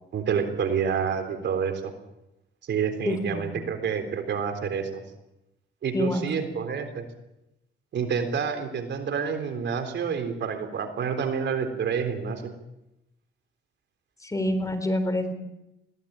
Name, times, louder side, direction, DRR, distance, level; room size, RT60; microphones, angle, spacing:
voice 1, 0.1-1.8 2.7-5.0 5.8-7.1 7.9-12.5, right 6 dB, 65° right, 7 dB, 3.8 m, -28 dB
voice 2, 3.1-3.6 5.9-6.5 14.2-15.3, left 1 dB, 15° left, 10 dB, 4.0 m, -27 dB
22.0 x 17.0 x 8.9 m, 0.89 s
cardioid pair, 90°, 20 cm